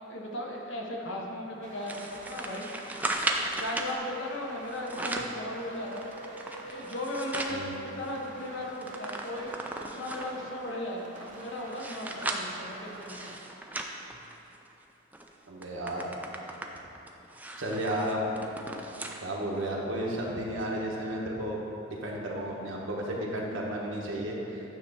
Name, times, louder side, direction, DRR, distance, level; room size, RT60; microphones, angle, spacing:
voice 1, 0.0-2.7 3.6-6.0 6.7-13.3, left 1 dB, 65° left, -1 dB, 1.0 m, -37 dB
sound 1, 1.6-13.4, right 2 dB, 40° right, 0.6 m, -48 dB
sound 2, 1.9-3.9 4.7-5.4 5.9-7.6 8.0-8.1 8.4-10.4 11.0-14.7 15.1-15.3 15.6-19.2 19.6-19.7 20.6-20.7, right 2 dB, 10° right, 0.3 m, -36 dB
sound 3, 3.9-9.0, right 2 dB, 45° left, 0.8 m, -47 dB
voice 2, 15.5-16.1 17.6-18.3 19.2-21.6 21.9-24.7, right 1 dB, 75° right, -2 dB, 1.1 m, -33 dB
9.2 x 3.1 x 6.1 m, 2.9 s
head